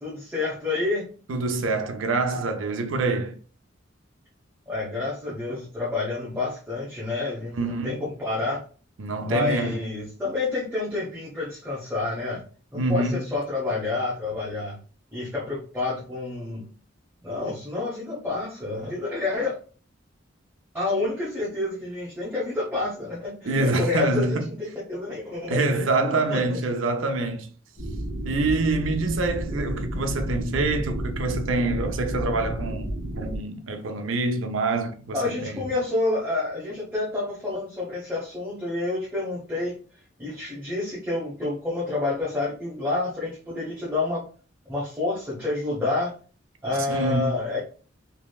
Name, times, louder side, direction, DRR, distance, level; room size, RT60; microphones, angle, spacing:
voice 1, 0.0-1.1 4.7-8.6 9.2-12.4 12.7-14.8 15.1-16.7 17.2-19.6 20.7-25.8 26.3-26.6 35.1-39.8 40.2-44.2 44.7-46.1 46.6-47.6, left 2 dB, 10° right, 0.9 m, -29 dB
voice 2, 1.3-3.4 7.6-8.0 9.0-9.8 12.7-13.3 23.4-24.5 25.5-27.5 28.2-35.7 46.9-47.4, right 2 dB, 85° right, 0.5 m, -26 dB
sound 1, 27.8-33.4, right 1 dB, 50° left, 1.5 m, -31 dB
3.1 x 2.7 x 2.2 m
head